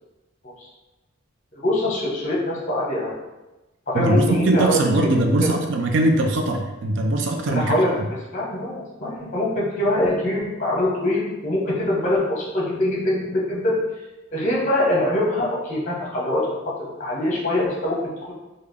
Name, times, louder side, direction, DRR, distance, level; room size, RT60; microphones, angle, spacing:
voice 1, 1.5-3.2 3.9-5.1 5.4-5.5 7.5-7.9 8.3-13.8 14.3-18.3, left 1 dB, 35° left, -5 dB, 0.9 m, -23 dB
voice 2, 3.9-7.8, right 2 dB, 60° right, 3 dB, 0.4 m, -21 dB
3.6 x 2.2 x 3.3 m, 1.0 s
head